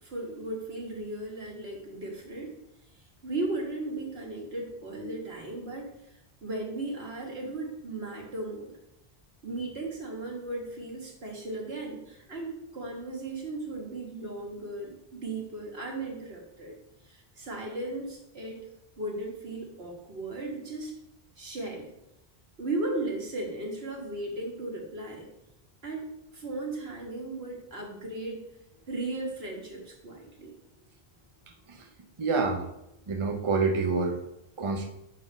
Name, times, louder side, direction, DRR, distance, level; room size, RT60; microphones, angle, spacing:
voice 1, 0.0-2.5 3.2-5.9 6.4-8.7 9.4-16.8 17.0-18.7 19.0-20.9 21.4-21.9 22.6-25.3 25.8-28.4 28.9-30.5, right 2 dB, 80° right, -1 dB, 1.8 m, -36 dB
voice 2, 32.2-32.6 33.1-34.2 34.6-34.9, right 4 dB, 35° right, 3 dB, 0.7 m, -27 dB
6.9 x 4.0 x 5.4 m, 0.84 s
omnidirectional pair, 1.0 m